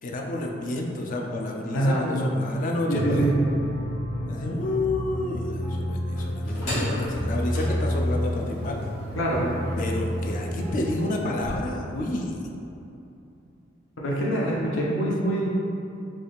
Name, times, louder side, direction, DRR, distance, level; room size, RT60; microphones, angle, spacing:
voice 1, 0.0-3.3 4.3-8.8 9.8-12.5, left 2 dB, 45° left, 0 dB, 0.3 m, -29 dB
voice 2, 1.7-2.0 2.9-3.3 9.2-9.5 14.0-15.5, right 1 dB, 75° left, -4 dB, 0.7 m, -25 dB
sound 1, 2.9-11.9, equal, 65° right, 0.4 m, -36 dB
sound 2, 3.1-11.0, equal, ahead, 0.7 m, -31 dB
sound 3, 6.2-11.6, equal, 60° left, 1.5 m, -37 dB
3.3 x 2.4 x 4.0 m, 2.8 s
head